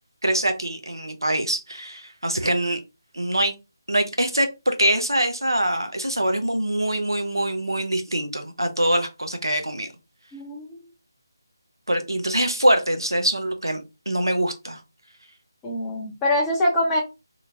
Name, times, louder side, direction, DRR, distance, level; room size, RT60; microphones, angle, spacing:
voice 1, 0.2-2.8 3.1-3.5 3.9-9.9 11.9-14.8, right 1 dB, 80° right, 0.6 m, -24 dB
voice 2, 10.3-10.8 15.6-17.0, left 1 dB, 10° left, 0.6 m, -24 dB
2.8 x 2.1 x 2.7 m
figure-of-eight pair, 155°, 2 cm